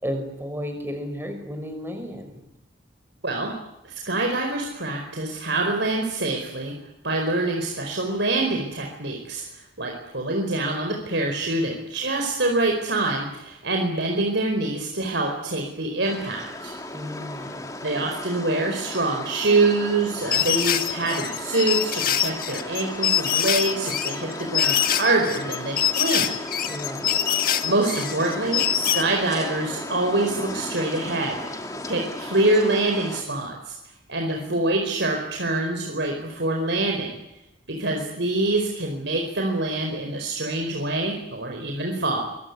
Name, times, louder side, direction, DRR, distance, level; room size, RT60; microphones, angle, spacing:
voice 1, 0.0-2.4 16.9-17.7 26.7-27.2, equal, 10° right, 6 dB, 5.7 m, -33 dB
voice 2, 3.8-6.7 7.0-16.7 17.8-26.4 27.6-31.4 31.9-33.7 34.1-37.2 37.7-42.2, right 2 dB, 70° right, 2 dB, 4.7 m, -25 dB
sound 1, 16.0-33.2, left 1 dB, 15° left, 2.6 m, -35 dB
sound 2, 20.3-29.0, left 10 dB, 50° left, 1.8 m, -24 dB
25.0 x 22.0 x 9.7 m, 0.86 s
head